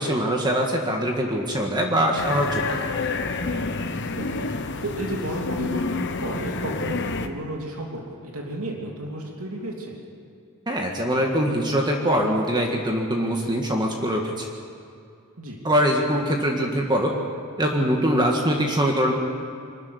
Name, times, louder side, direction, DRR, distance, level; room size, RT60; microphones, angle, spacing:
voice 1, 0.0-2.9 10.7-14.5 15.6-17.1 17.6-19.1, equal, 20° right, 1 dB, 1.8 m, -23 dB
sound 1, 2.2-7.3, left 3 dB, 55° left, 1.2 m, -28 dB
voice 2, 4.2-4.5 4.8-10.0 15.4-15.6, right 1 dB, 70° right, -1 dB, 3.0 m, -32 dB
24.0 x 13.5 x 9.6 m, 2.4 s
head